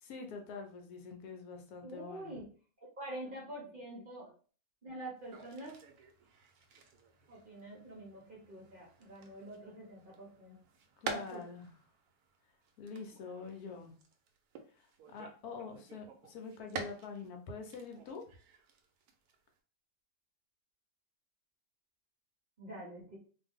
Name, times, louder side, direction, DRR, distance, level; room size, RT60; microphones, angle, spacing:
voice 1, 0.0-2.4 11.0-11.7 12.8-13.9 14.8-18.2, left 4 dB, 75° left, 3 dB, 1.1 m, -45 dB
voice 2, 1.8-2.4 3.0-4.3 4.8-5.8 7.3-10.6 11.0-11.4 22.6-23.2, right 1 dB, 40° right, -3 dB, 0.8 m, -46 dB
sound 1, 5.2-17.3 17.6-19.6, right 5 dB, 75° right, 1.0 m, -49 dB
2.6 x 2.5 x 3.5 m, 0.40 s
omnidirectional pair, 1.7 m